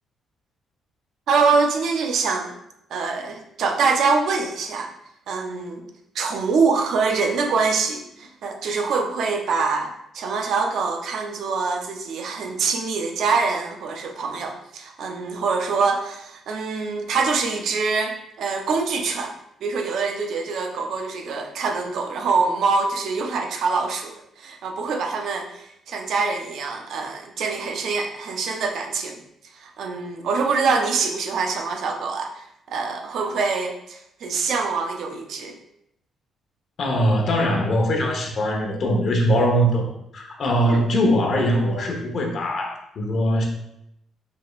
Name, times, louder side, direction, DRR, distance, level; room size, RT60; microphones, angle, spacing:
voice 1, 1.3-2.5 2.9-4.9 5.3-5.9 6.1-29.2 29.5-35.6 40.7-40.9, right 4 dB, 70° right, 4 dB, 0.6 m, -24 dB
voice 2, 36.8-39.9 40.1-43.5, equal, 55° left, 1 dB, 1.0 m, -21 dB
5.2 x 3.6 x 2.4 m, 0.78 s
cardioid pair, 90°, 0 cm